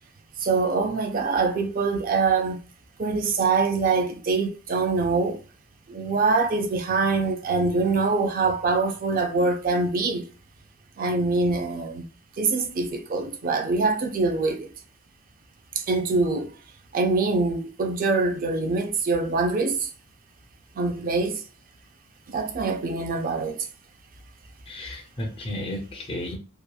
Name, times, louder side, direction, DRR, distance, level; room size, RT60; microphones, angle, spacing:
voice 1, 0.4-2.6 3.0-5.4 5.9-10.2 11.0-12.0 12.4-14.7 15.9-16.5 16.9-19.9 20.8-21.4 22.3-23.6, right 3 dB, 45° right, 0.4 m, -24 dB
voice 2, 24.7-26.4, left 1 dB, 25° left, 0.5 m, -33 dB
2.9 x 2.2 x 2.2 m
head